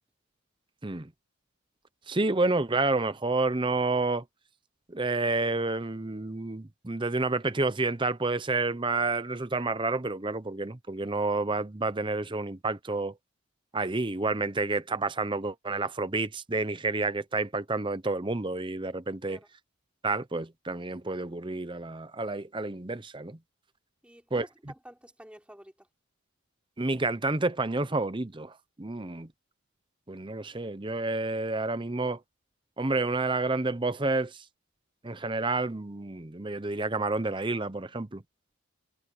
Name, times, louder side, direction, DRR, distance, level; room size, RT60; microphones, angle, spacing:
voice 1, 2.1-4.2 4.9-13.1 13.7-19.4 20.0-23.4 24.3-24.5 26.8-29.3 30.1-32.2 32.8-34.4 35.0-38.2, right 3 dB, 20° right, 0.7 m, -29 dB
voice 2, 24.0-25.9, equal, 5° right, 3.7 m, -51 dB
head